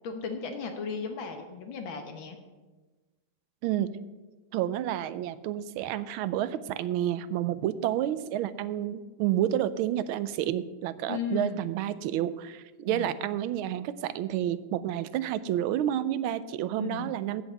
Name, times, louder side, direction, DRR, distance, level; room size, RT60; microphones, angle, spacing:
voice 1, 0.0-2.4 11.1-11.6 12.9-13.1 16.8-17.1, left 5 dB, 70° left, 5 dB, 1.9 m, -35 dB
voice 2, 3.6-3.9 4.5-17.4, right 11 dB, 80° right, 14 dB, 1.4 m, -30 dB
7.7 x 7.0 x 8.2 m, 1.2 s
omnidirectional pair, 2.3 m